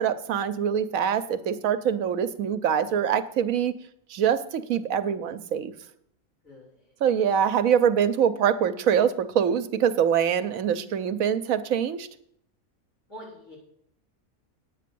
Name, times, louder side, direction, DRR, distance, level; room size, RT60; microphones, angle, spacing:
voice 1, 0.0-3.7 4.1-5.7 7.0-12.1, right 8 dB, 75° right, 12 dB, 1.1 m, -24 dB
voice 2, 6.4-6.9 13.1-13.6, equal, 70° left, -4 dB, 5.7 m, -45 dB
9.1 x 8.3 x 6.8 m, 0.70 s
omnidirectional pair, 1.5 m